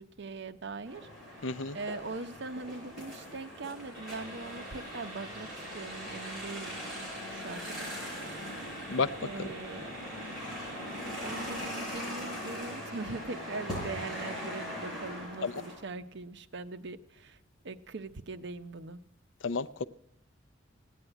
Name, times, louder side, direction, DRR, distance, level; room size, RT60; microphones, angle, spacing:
voice 1, 0.0-1.5 1.7-7.9 8.3-8.6 9.2-9.9 11.2-17.4 17.6-19.0, right 3 dB, 60° right, 0.8 m, -41 dB
sound 1, 0.8-15.8, equal, ahead, 7.9 m, -40 dB
voice 2, 1.4-1.8 8.9-9.1 9.4-9.5 15.4-15.5 19.4-19.8, left 4 dB, 75° left, 0.5 m, -31 dB
sound 2, 3.9-11.6, right 1 dB, 25° right, 5.5 m, -49 dB
16.5 x 9.5 x 8.9 m
head